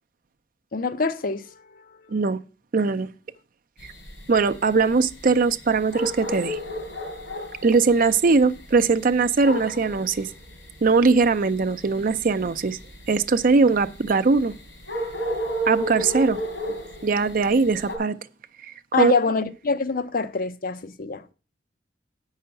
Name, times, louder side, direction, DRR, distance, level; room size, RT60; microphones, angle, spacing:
voice 1, 0.7-1.5 18.9-21.2, left 4 dB, 50° left, 0.6 m, -25 dB
voice 2, 2.1-2.4 2.7-3.1 4.3-6.6 7.6-10.3 10.8-12.8 13.1-14.5 15.7-16.4 17.0-18.2 19.0-19.1, right 4 dB, 50° right, 0.5 m, -20 dB
sound 1, 3.8-18.0, right 1 dB, 85° left, 3.7 m, -33 dB
7.8 x 5.6 x 7.7 m
head